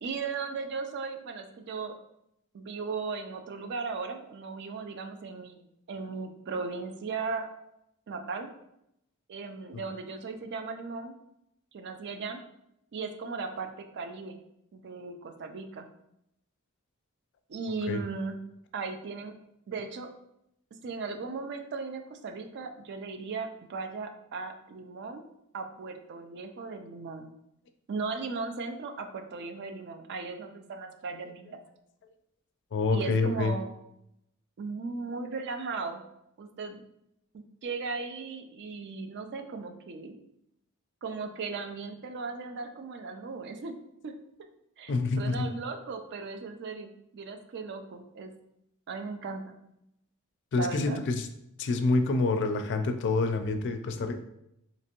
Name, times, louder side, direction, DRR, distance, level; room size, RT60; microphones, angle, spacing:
voice 1, 0.0-1.9 2.5-5.6 5.9-7.5 8.1-8.5 9.3-11.2 11.7-12.4 12.9-14.4 14.7-15.9 17.5-18.4 18.7-19.3 19.7-20.1 20.8-25.2 25.5-27.3 27.9-31.6 32.9-33.7 34.6-36.0 36.4-36.8 37.6-40.1 41.0-43.8 44.0-44.1 44.8-48.3 48.9-49.5 50.6-51.0, right 4 dB, 50° right, 6 dB, 0.4 m, -37 dB
voice 2, 32.7-33.5 44.9-45.5 50.5-51.3 51.6-54.2, left 3 dB, 55° left, 7 dB, 0.4 m, -27 dB
3.3 x 2.9 x 2.9 m, 0.80 s
head